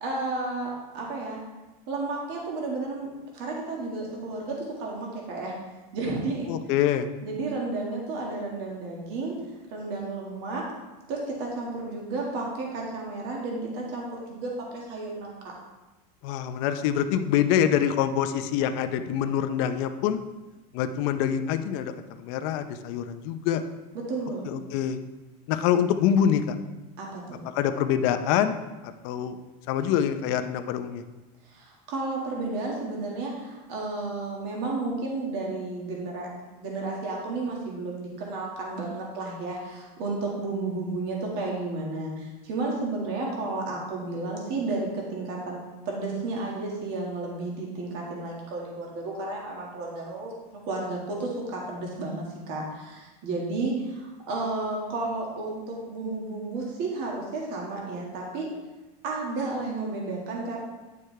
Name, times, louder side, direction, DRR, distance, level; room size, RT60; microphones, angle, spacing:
voice 1, 0.0-1.4 1.9-3.1 3.3-5.6 5.9-6.5 7.2-9.4 9.7-10.7 11.1-15.4 23.9-24.5 27.0-27.5 31.4-58.5 59.0-60.6, right 3 dB, 55° right, -2 dB, 1.9 m, -32 dB
voice 2, 6.5-7.1 16.2-20.2 20.7-23.6 24.5-25.0 25.5-26.6 27.5-28.6 28.8-29.4 29.7-31.0, left 9 dB, 55° left, 9 dB, 0.7 m, -25 dB
9.5 x 6.7 x 3.3 m, 1.1 s
supercardioid pair, 145°, 20 cm